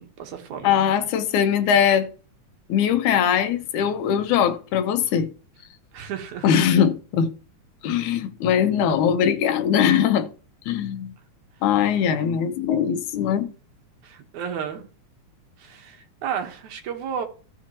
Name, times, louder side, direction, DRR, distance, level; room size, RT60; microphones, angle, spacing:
voice 1, 0.0-0.8 5.9-6.5 14.0-14.9 15.6-17.3, right 8 dB, 70° right, 2.6 m, -32 dB
voice 2, 0.6-2.1 2.7-5.3 6.4-7.3 7.8-10.3 10.7-11.1 11.6-13.5, left 8 dB, 75° left, 2.3 m, -21 dB
16.0 x 5.9 x 2.9 m
omnidirectional pair, 3.6 m